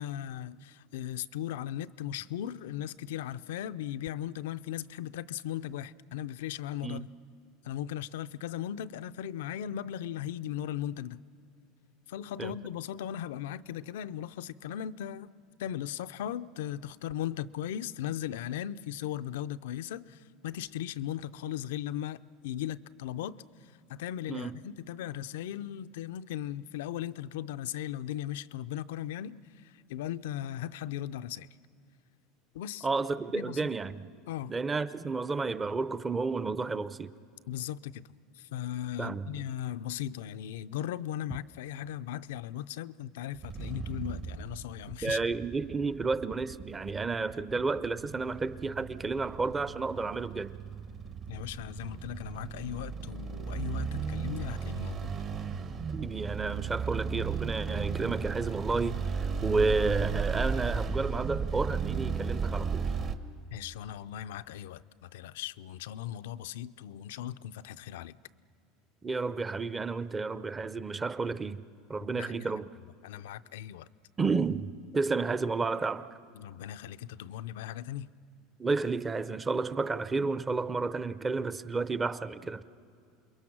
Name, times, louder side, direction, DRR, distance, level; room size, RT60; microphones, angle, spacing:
voice 1, 0.0-7.1 7.6-11.2 12.1-15.3 15.6-23.4 23.9-31.5 32.5-32.9 33.3-33.7 34.3-34.6 37.5-38.1 38.4-45.2 51.3-55.1 63.5-68.2 72.2-72.5 73.0-73.9 76.3-78.1, left 11 dB, 85° left, 0.4 m, -37 dB
voice 2, 32.8-34.1 34.5-37.1 39.0-39.3 45.0-50.6 55.9-62.9 69.0-71.6 71.9-72.7 74.2-76.1 78.6-82.6, right 4 dB, 20° right, 0.6 m, -31 dB
sound 1, 43.4-63.2, right 5 dB, 40° right, 1.1 m, -35 dB
28.0 x 22.0 x 6.1 m
supercardioid pair, 115°, 0 cm